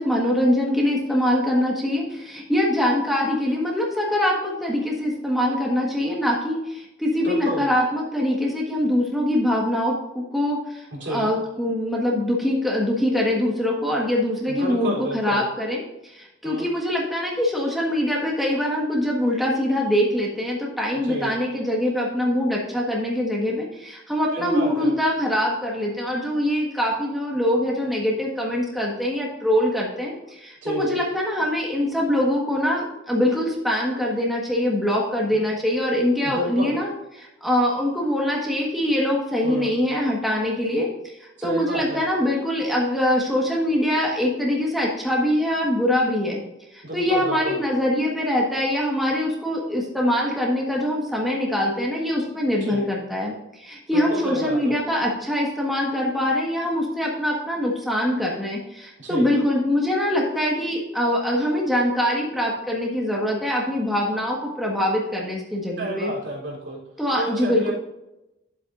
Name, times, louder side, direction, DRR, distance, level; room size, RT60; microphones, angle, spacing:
voice 1, 0.0-36.9 37.2-46.4 46.7-66.1 67.0-67.7, left 1 dB, ahead, -3 dB, 1.4 m, -23 dB
voice 2, 7.2-7.7 10.9-11.3 14.4-15.4 16.4-16.7 21.0-21.3 24.3-24.9 30.6-31.0 35.3-35.4 36.2-36.8 39.4-39.7 41.4-42.0 46.8-47.6 52.6-52.9 53.9-54.8 59.0-59.3 65.8-66.8 67.1-67.7, right 1 dB, 70° right, -3 dB, 3.4 m, -30 dB
11.5 x 7.9 x 2.6 m, 0.92 s
head